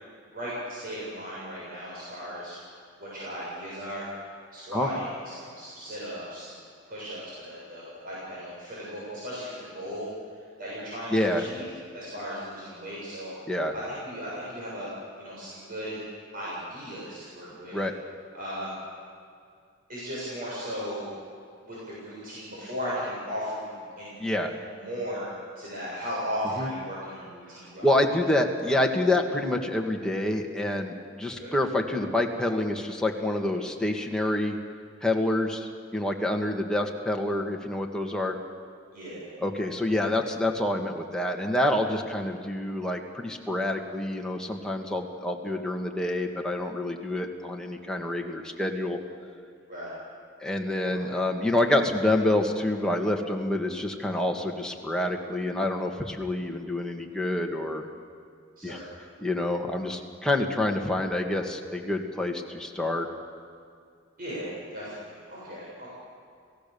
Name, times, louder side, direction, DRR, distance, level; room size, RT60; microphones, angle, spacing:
voice 1, 0.3-2.6 3.0-4.1 4.5-6.6 6.9-10.1 10.4-11.7 11.9-13.3 13.7-16.0 16.3-17.7 18.3-18.8 19.9-21.1 21.6-25.3 25.6-27.9 31.4-31.5 38.9-39.3 40.0-40.1 49.7-49.9 51.0-51.1 58.6-59.1 64.2-65.9, equal, 50° right, -7 dB, 7.3 m, -36 dB
voice 2, 11.1-11.4 13.5-13.7 17.7-17.9 24.2-24.5 26.6-26.7 27.8-34.6 35.0-38.3 39.4-49.0 50.4-57.9 58.6-58.8 59.2-63.1, left 1 dB, 5° left, 1 dB, 1.9 m, -27 dB
30.0 x 17.0 x 7.1 m, 2.3 s
head